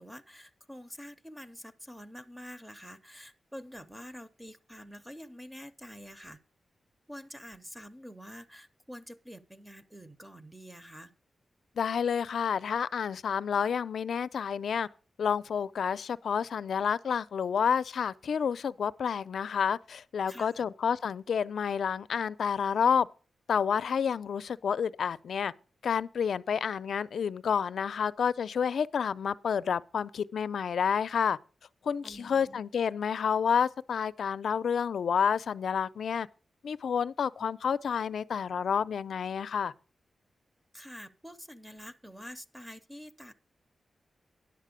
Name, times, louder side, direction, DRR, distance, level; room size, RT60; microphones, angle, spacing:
voice 1, 0.0-6.4 7.1-11.1 20.3-20.7 32.0-32.6 40.7-43.3, equal, 5° right, 0.6 m, -47 dB
voice 2, 11.8-14.9 15.2-23.1 23.5-25.5 25.8-31.4 31.8-36.3 36.6-39.7, left 7 dB, 80° left, 0.4 m, -29 dB
10.5 x 7.4 x 5.0 m
wide cardioid pair, 155°, 0 cm